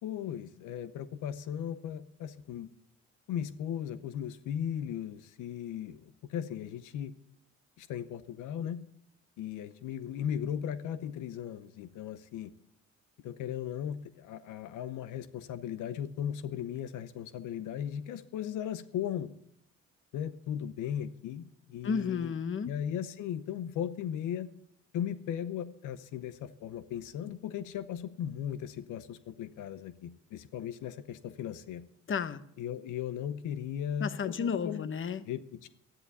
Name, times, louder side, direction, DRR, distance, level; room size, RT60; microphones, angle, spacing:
voice 1, 0.0-2.7 3.3-7.1 7.8-8.8 9.4-12.5 13.2-19.3 20.1-22.3 22.7-24.5 24.9-31.8 32.6-34.9 35.3-35.7, left 9 dB, 85° left, 14 dB, 0.8 m, -37 dB
voice 2, 21.8-22.7 32.1-32.4 34.0-35.2, left 6 dB, 40° left, 13 dB, 1.1 m, -32 dB
13.0 x 11.0 x 7.0 m, 0.67 s
cardioid pair, 90°, 30 cm